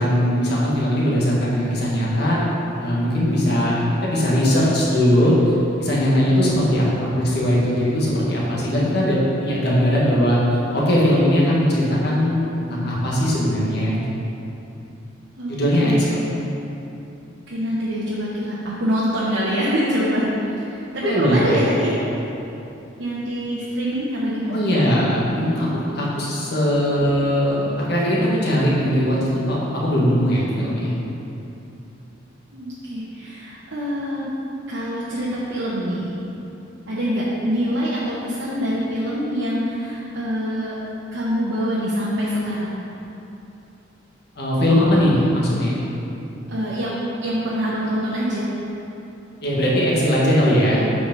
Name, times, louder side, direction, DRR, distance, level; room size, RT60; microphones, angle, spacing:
voice 1, 0.0-2.4 2.8-5.3 5.8-10.4 10.7-14.0 15.5-16.2 21.0-21.6 24.5-25.7 25.9-30.9 44.4-45.8 49.4-50.8, equal, 55° left, -6 dB, 1.6 m, -20 dB
voice 2, 15.4-16.2 17.5-20.3 20.6-22.0 23.0-24.6 25.3-25.4 32.5-34.3 34.7-36.2 36.9-40.8 41.1-42.8 46.5-48.5, equal, 65° right, -8 dB, 0.9 m, -25 dB
8.1 x 5.1 x 3.8 m, 2.9 s
head